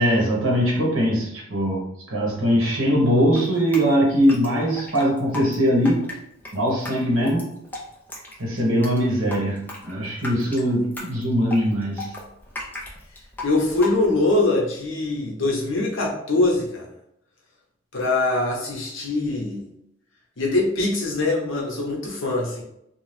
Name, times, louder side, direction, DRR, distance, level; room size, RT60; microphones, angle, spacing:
voice 1, 0.0-6.1 6.5-7.5 8.4-12.1, equal, 80° right, -2 dB, 1.0 m, -21 dB
Drip, 3.4-14.3, left 2 dB, 10° left, 0.4 m, -37 dB
voice 2, 13.4-16.9 17.9-19.6 20.4-22.6, left 2 dB, 75° left, -2 dB, 0.9 m, -23 dB
2.7 x 2.3 x 3.2 m, 0.76 s
head